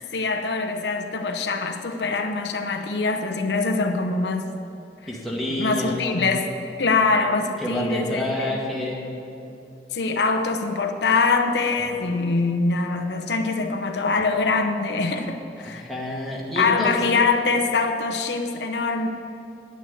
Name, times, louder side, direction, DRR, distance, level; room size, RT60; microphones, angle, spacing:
voice 1, 0.0-4.5 5.6-6.5 6.8-8.6 9.9-15.9 16.6-19.1, left 4 dB, 75° left, 4 dB, 0.8 m, -23 dB
voice 2, 5.1-6.3 7.6-9.1 15.6-17.0, left 1 dB, ahead, -5 dB, 1.9 m, -28 dB
10.5 x 9.3 x 7.7 m, 2.9 s
head